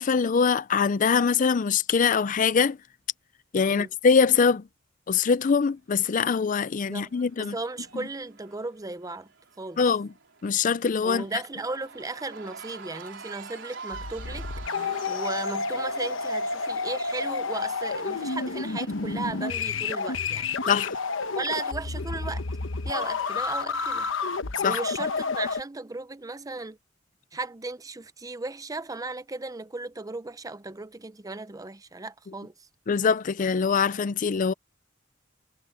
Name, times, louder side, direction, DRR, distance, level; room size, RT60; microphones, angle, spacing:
voice 1, 0.0-2.8 3.5-4.6 5.1-7.5 9.8-10.1 10.4-11.2 20.7-21.0 24.6-24.8 32.9-34.5, left 5 dB, 45° left, 0.4 m, -23 dB
Cheering / Crowd, 6.1-21.3, right 5 dB, 70° right, 4.1 m, -48 dB
voice 2, 6.6-9.3 9.6-9.9 11.0-14.5 15.1-20.5 21.3-22.4 22.8-24.1 24.6-26.8 27.3-32.7, right 3 dB, 20° right, 0.6 m, -36 dB
sound 1, 13.9-25.6, left 4 dB, 90° left, 1.1 m, -30 dB
head